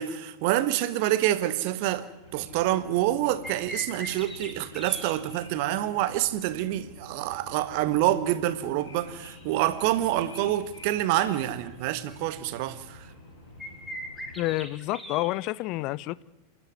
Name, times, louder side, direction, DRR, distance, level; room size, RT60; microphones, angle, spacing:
voice 1, 0.0-13.1, right 13 dB, 45° right, 1.5 m, -27 dB
sound 1, 1.5-1.6 2.0-2.1 2.5-2.6 3.2-5.1 9.2-9.3 10.0-10.9 11.3-11.4 11.8-11.9 12.1-13.1 13.6-15.3, equal, 5° left, 3.8 m, -40 dB
sound 2, 2.2-14.6, left 1 dB, 75° left, 6.7 m, -49 dB
voice 2, 14.4-16.2, left 18 dB, 40° left, 0.7 m, -29 dB
27.5 x 12.0 x 9.8 m
figure-of-eight pair, 90°, 0 cm